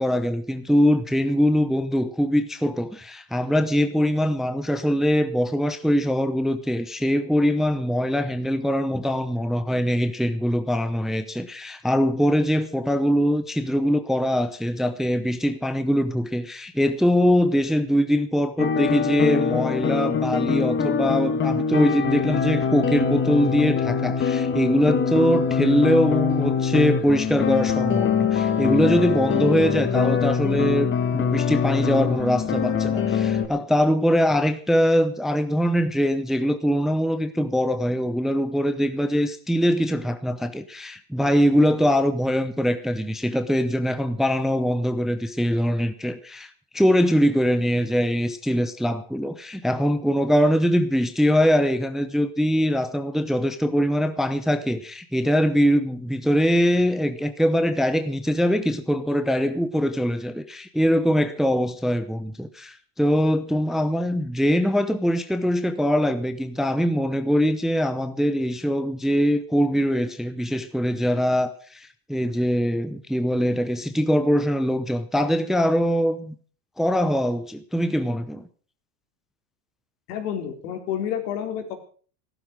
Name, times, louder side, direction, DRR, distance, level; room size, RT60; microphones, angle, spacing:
voice 1, 0.0-76.3 76.8-78.4, equal, ahead, 10 dB, 0.8 m, -22 dB
sound 1, 18.6-33.5, left 7 dB, 25° left, 1.5 m, -23 dB
voice 2, 80.1-81.8, left 9 dB, 75° left, 6 dB, 4.0 m, -29 dB
14.5 x 12.5 x 6.4 m, 0.43 s
supercardioid pair, 130°, 47 cm